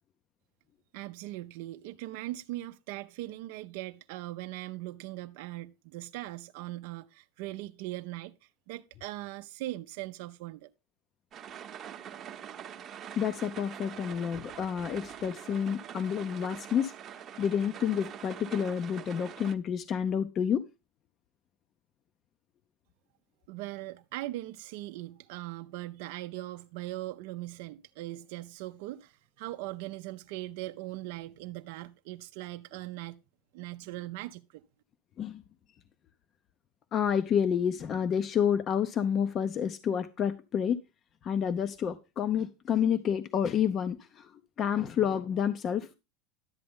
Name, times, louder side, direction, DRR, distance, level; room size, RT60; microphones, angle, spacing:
voice 1, 0.9-10.7 23.5-33.2 33.5-34.6, right 17 dB, 70° right, 0.4 m, -40 dB
sound 1, 11.3-19.5, right 9 dB, 35° right, 0.8 m, -44 dB
voice 2, 13.2-16.9 17.4-20.6 35.2-35.4 36.9-40.8 41.2-45.9, left 8 dB, 35° left, 0.5 m, -29 dB
11.0 x 7.7 x 3.6 m
supercardioid pair, 115°, 0 cm